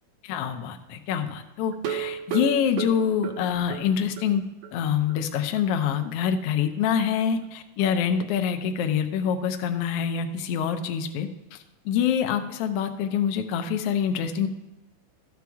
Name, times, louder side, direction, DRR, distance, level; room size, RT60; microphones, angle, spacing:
voice 1, 0.2-4.4 4.7-11.6 11.8-14.5, left 8 dB, 75° left, 7 dB, 1.5 m, -26 dB
sound 1, 1.7-4.3 4.6-4.7 5.1-5.2 5.6-5.7, right 10 dB, 70° right, 2.0 m, -33 dB
13.0 x 7.6 x 3.5 m, 0.98 s
omnidirectional pair, 3.3 m